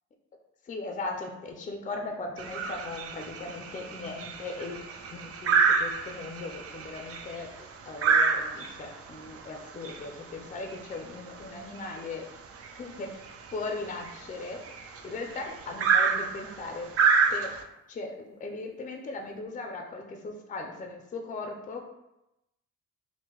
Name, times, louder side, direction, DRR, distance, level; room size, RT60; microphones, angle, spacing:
voice 1, 0.6-12.3 12.8-14.6 15.0-16.9 17.3-17.5 17.9-21.9, left 3 dB, 25° left, 3 dB, 0.4 m, -38 dB
sound 1, 2.4-17.6, right 5 dB, 50° right, 0.4 m, -29 dB
3.6 x 2.1 x 2.9 m, 0.91 s
cardioid pair, 90°, 30 cm